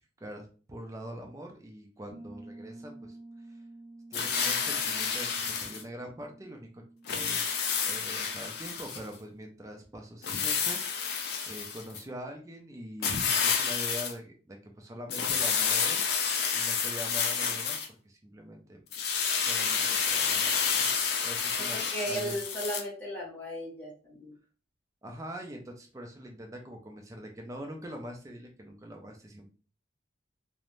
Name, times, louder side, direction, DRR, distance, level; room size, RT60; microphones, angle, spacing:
voice 1, 0.2-3.2 3.5-3.6 4.1-6.8 7.1-10.8 11.5-16.0 16.5-17.8 18.0-18.8 19.4-20.9 21.2-21.8 22.0-22.4 25.0-29.5, equal, 15° right, 2 dB, 0.3 m, -43 dB
Piano, 2.1-10.6, right 2 dB, 80° right, 0.6 m, -52 dB
sound 1, 4.1-5.8 7.1-9.1 10.2-12.0 13.0-14.1 15.1-17.9 18.9-22.8, left 6 dB, 50° left, 0.4 m, -29 dB
voice 2, 21.7-24.3, equal, 10° left, -5 dB, 0.7 m, -36 dB
2.5 x 2.0 x 3.0 m, 0.39 s
head